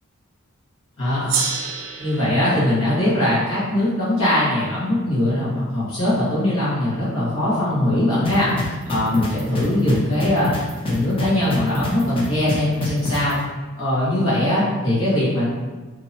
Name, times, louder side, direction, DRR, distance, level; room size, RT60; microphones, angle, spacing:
voice 1, 1.0-1.4 2.0-13.4 13.8-15.5, left 1 dB, 70° left, -9 dB, 1.4 m, -21 dB
Gong, 1.3-6.0, right 5 dB, 60° right, 0.4 m, -31 dB
sound 1, 8.2-13.3, left 1 dB, 25° left, 0.5 m, -26 dB
2.8 x 2.7 x 2.7 m, 1.3 s
head